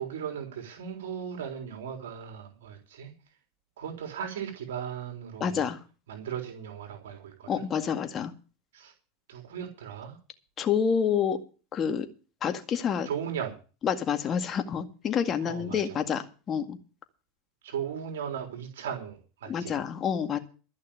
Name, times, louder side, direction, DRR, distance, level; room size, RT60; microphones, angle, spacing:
voice 1, 0.0-3.1 3.8-5.7 6.1-7.7 8.7-8.9 9.3-10.2 13.0-13.6 15.4-16.0 17.6-19.8, right 8 dB, 85° right, 3 dB, 3.7 m, -37 dB
voice 2, 5.4-5.8 7.5-8.3 10.6-11.4 11.7-12.1 12.4-13.1 13.8-16.8 19.5-20.4, left 7 dB, 35° left, 7 dB, 2.0 m, -28 dB
14.0 x 6.4 x 8.6 m, 0.36 s
hypercardioid pair, 105°, 0 cm